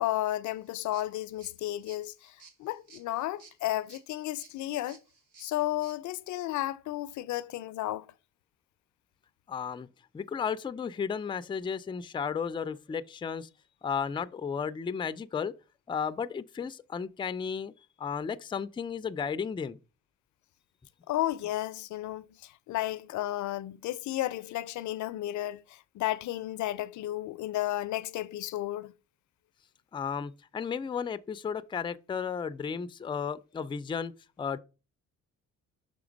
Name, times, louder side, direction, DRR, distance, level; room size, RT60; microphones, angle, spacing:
voice 1, 0.0-2.3 2.6-5.0 5.4-8.1 21.1-25.6 25.9-28.9, left 14 dB, 75° left, 0.5 m, -33 dB
sound 1, 0.5-6.0, right 5 dB, 90° right, 1.4 m, -57 dB
voice 2, 9.5-9.9 10.1-13.5 13.8-15.5 15.9-17.7 18.0-19.8 29.9-34.1 34.4-34.6, left 6 dB, 15° left, 0.4 m, -34 dB
6.0 x 3.4 x 5.1 m
cardioid pair, 90°, 30 cm